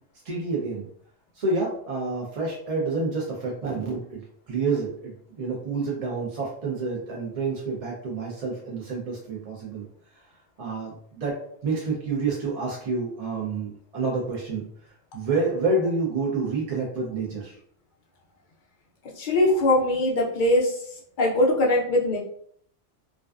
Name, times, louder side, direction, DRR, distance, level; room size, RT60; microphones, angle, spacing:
voice 1, 0.2-0.9 1.3-4.2 4.5-9.9 10.6-11.4 11.6-14.6 15.1-17.6, right 3 dB, 50° right, -4 dB, 0.4 m, -28 dB
voice 2, 19.2-20.8 21.2-22.2, left 1 dB, 60° left, -2 dB, 0.5 m, -21 dB
2.4 x 2.3 x 2.3 m, 0.64 s
omnidirectional pair, 1.2 m